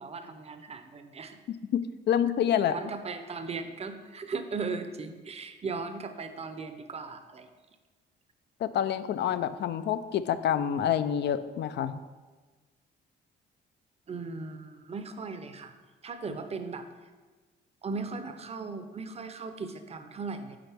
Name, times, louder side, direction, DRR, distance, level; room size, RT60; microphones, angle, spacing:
voice 1, 0.0-1.4 2.7-7.5 14.1-15.7 16.0-16.9 17.8-20.6, right 4 dB, 30° right, 8 dB, 0.6 m, -37 dB
voice 2, 1.7-2.8 8.6-12.0, left 9 dB, 60° left, 13 dB, 0.4 m, -27 dB
8.8 x 3.9 x 3.5 m, 1.3 s
cardioid pair, 90°, 20 cm